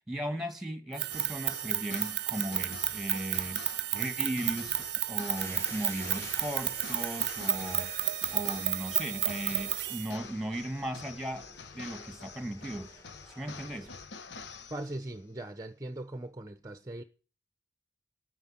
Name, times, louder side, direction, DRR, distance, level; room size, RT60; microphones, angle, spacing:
voice 1, 0.1-3.7 3.9-7.9 8.3-11.5 11.7-12.9 13.3-13.9, right 1 dB, ahead, 1.9 m, -37 dB
sound 1, 0.9-10.1, right 15 dB, 70° right, 0.6 m, -32 dB
sound 2, 1.1-15.2, left 5 dB, 75° left, 1.0 m, -47 dB
sound 3, 5.4-14.0, equal, 15° left, 1.9 m, -49 dB
voice 2, 14.7-17.0, right 1 dB, 20° right, 0.8 m, -40 dB
11.0 x 9.6 x 8.7 m
head